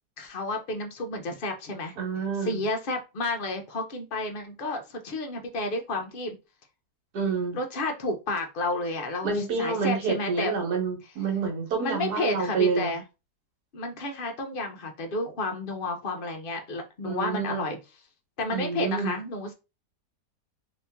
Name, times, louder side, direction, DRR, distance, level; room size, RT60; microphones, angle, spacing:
voice 1, 0.2-1.9 2.4-6.3 7.5-10.5 11.8-13.0 13.7-17.8 18.4-19.5, left 2 dB, 55° left, 4 dB, 0.6 m, -31 dB
voice 2, 2.0-2.6 7.1-7.6 9.2-12.9 17.0-17.6 18.5-19.2, right 5 dB, 70° right, 2 dB, 1.6 m, -28 dB
3.0 x 2.8 x 3.4 m, 0.27 s
omnidirectional pair, 1.8 m